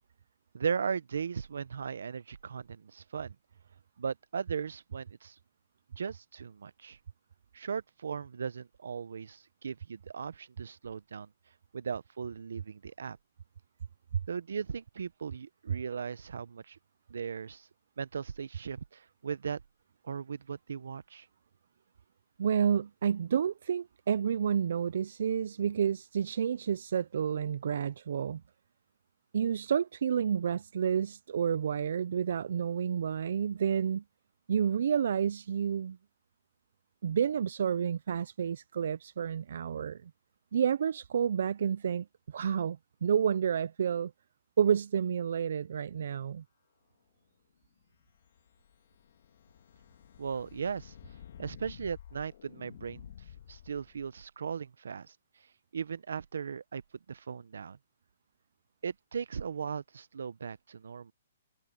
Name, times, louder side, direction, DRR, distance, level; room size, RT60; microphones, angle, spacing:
voice 1, 0.5-3.4 4.0-5.4 6.0-7.0 7.5-11.3 11.7-13.2 14.3-16.8 17.1-17.7 18.0-19.6 20.0-21.3 50.2-50.9 51.4-53.1 53.5-55.1 55.7-56.8 57.1-57.8 58.8-61.1, right 6 dB, 85° right, 0.7 m, -37 dB
voice 2, 22.4-28.4 29.3-34.0 34.5-36.0 37.0-40.1 40.5-44.1 44.6-46.4, right 8 dB, 65° right, 0.3 m, -30 dB
sound 1, 47.9-54.2, left 9 dB, 55° left, 1.5 m, -52 dB
hypercardioid pair, 165°, 0 cm